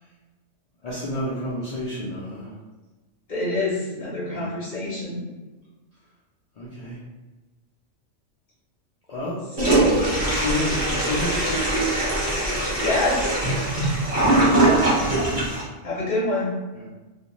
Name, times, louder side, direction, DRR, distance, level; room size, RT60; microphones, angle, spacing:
voice 1, 0.8-2.5 4.3-4.5 6.6-7.0 9.1-9.4 10.2-11.6 14.4-14.8 16.7-16.8, left 1 dB, 75° left, -7 dB, 0.3 m, -30 dB
voice 2, 3.3-5.2 9.6-10.0 12.5-13.3 15.8-16.5, left 2 dB, 45° left, -7 dB, 0.7 m, -27 dB
Toilet flush, 9.6-15.6, right 2 dB, 30° right, 0.8 m, -21 dB
2.4 x 2.2 x 2.9 m, 1.2 s
omnidirectional pair, 1.3 m